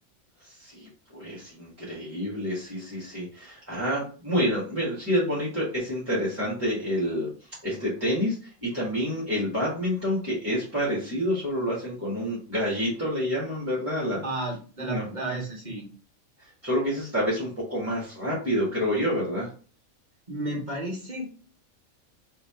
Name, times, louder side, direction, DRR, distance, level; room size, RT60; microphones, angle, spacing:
voice 1, 0.6-7.3 7.6-14.2 14.8-15.4 16.6-19.5, equal, 10° right, -8 dB, 1.8 m, -28 dB
voice 2, 14.2-15.9 20.3-21.3, right 2 dB, 35° right, -1 dB, 1.2 m, -32 dB
3.9 x 3.2 x 3.7 m, 0.39 s
omnidirectional pair, 1.5 m